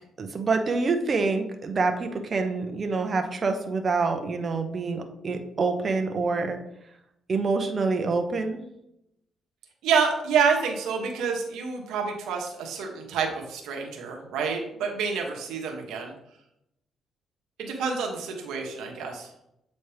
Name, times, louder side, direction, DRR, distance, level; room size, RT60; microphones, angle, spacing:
voice 1, 0.2-6.6 7.3-8.6, right 4 dB, 40° right, 5 dB, 0.9 m, -26 dB
voice 2, 9.8-16.1 17.6-19.3, right 6 dB, 90° right, 1 dB, 1.2 m, -28 dB
8.0 x 4.2 x 3.4 m, 0.81 s
cardioid pair, 90°, 0 cm